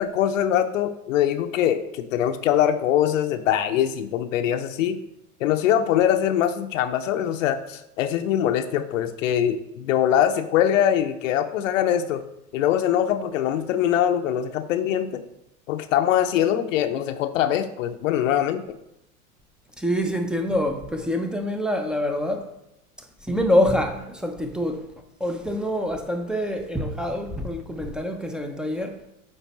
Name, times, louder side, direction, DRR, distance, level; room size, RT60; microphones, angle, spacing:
voice 1, 0.0-5.0 5.4-12.2 12.5-15.2 15.7-18.8, left 10 dB, 60° left, 0.6 m, -23 dB
voice 2, 19.8-22.5 23.2-24.9 25.2-29.0, left 1 dB, ahead, 0.5 m, -25 dB
8.4 x 3.4 x 4.1 m
figure-of-eight pair, 85°, 43 cm